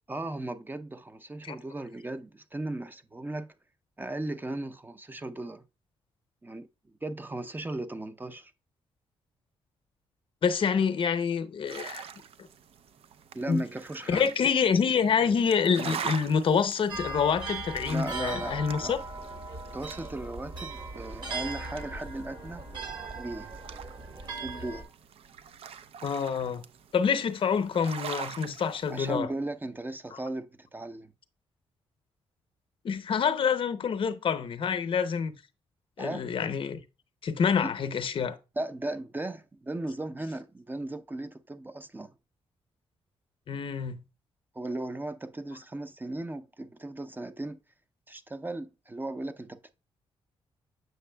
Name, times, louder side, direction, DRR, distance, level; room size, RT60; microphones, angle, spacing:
voice 1, 0.1-3.5 4.0-5.6 6.4-6.7 7.0-8.5 13.3-14.3 17.8-19.0 19.7-22.6 23.2-23.5 24.4-24.9 28.9-31.1 36.0-36.3 37.6-37.7 38.6-42.1 44.5-47.6 48.1-49.7, right 2 dB, 20° right, 0.6 m, -36 dB
voice 2, 10.4-12.1 13.5-13.6 14.1-19.0 26.0-26.6 26.9-29.3 32.8-35.3 36.0-36.8 37.2-38.4 43.5-44.0, left 6 dB, 55° left, 0.7 m, -27 dB
sound 1, 11.7-29.2, right 8 dB, 70° right, 0.5 m, -44 dB
sound 2, 16.9-24.8, right 3 dB, 45° right, 1.9 m, -38 dB
7.7 x 5.9 x 2.2 m
cardioid pair, 80°, 10 cm